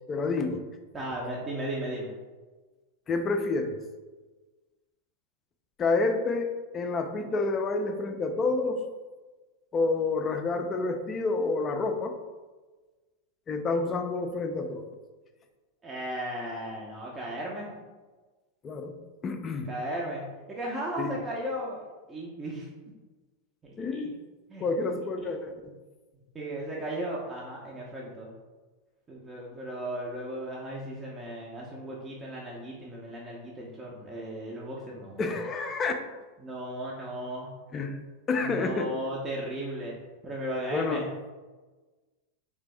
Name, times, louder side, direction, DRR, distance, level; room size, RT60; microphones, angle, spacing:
voice 1, 0.1-0.6 3.1-3.8 5.8-8.8 9.7-12.1 13.5-14.9 18.6-18.9 19.2-19.7 21.0-21.2 23.8-24.2 24.6-25.7 35.2-35.9 37.7-38.0 38.3-38.9 40.7-41.1, left 3 dB, 25° left, 6 dB, 0.4 m, -29 dB
voice 2, 0.9-2.1 15.8-17.7 19.7-22.7 23.6-24.1 24.5-24.6 25.2-25.3 26.3-28.3 29.1-35.4 36.4-37.5 38.4-41.1, right 1 dB, 20° right, -4 dB, 0.6 m, -36 dB
3.3 x 3.3 x 3.2 m, 1.3 s
figure-of-eight pair, 90°, 0 cm